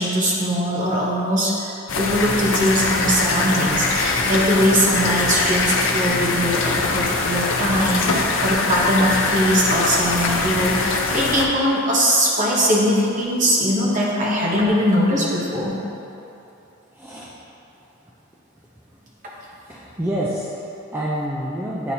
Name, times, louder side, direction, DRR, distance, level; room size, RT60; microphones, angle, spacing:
voice 1, 0.0-15.8, equal, 40° right, -5 dB, 1.1 m, -21 dB
sound 1, 1.9-11.4, left 3 dB, 65° left, 0.5 m, -22 dB
voice 2, 16.9-17.4 18.9-19.1 19.6-21.9, right 1 dB, 10° right, -7 dB, 0.4 m, -28 dB
9.1 x 4.1 x 2.8 m, 2.9 s
head